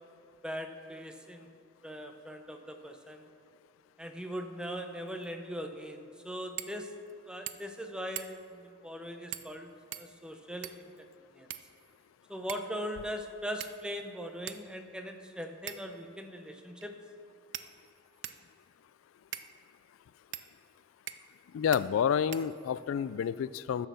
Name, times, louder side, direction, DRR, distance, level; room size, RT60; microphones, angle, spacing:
voice 1, 0.4-1.5 1.8-3.2 4.0-6.9 7.3-10.8 11.3-11.5 12.3-16.9, equal, 5° right, 6 dB, 0.6 m, -40 dB
sound 1, 6.6-6.8 7.1-7.2 7.5-7.8 8.2-8.5 9.3-9.6 9.9-10.9 11.5-12.1 12.5-12.8 13.6-14.0 14.5-14.6 15.7-16.0 16.8-16.9 17.5-18.5 19.3-19.5 20.3-20.5 21.1-21.4 21.7-21.8 22.3-22.9, right 12 dB, 65° right, 0.5 m, -43 dB
voice 2, 21.5-23.9, left 8 dB, 85° left, 16 dB, 0.3 m, -29 dB
11.5 x 6.4 x 6.8 m, 2.5 s
head